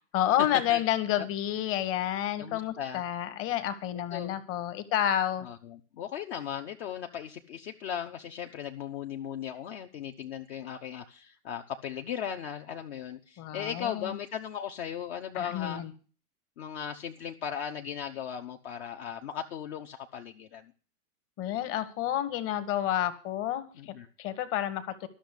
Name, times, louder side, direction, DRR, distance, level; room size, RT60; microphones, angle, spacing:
voice 1, 0.1-5.5 13.4-14.2 15.3-15.9 21.4-25.1, left 11 dB, 30° left, 12 dB, 1.3 m, -30 dB
voice 2, 2.4-3.0 4.1-4.4 5.4-15.8 16.6-20.7 23.8-24.1, left 8 dB, 45° left, 5 dB, 0.9 m, -37 dB
12.5 x 6.4 x 8.2 m, 0.39 s
figure-of-eight pair, 110°, 45 cm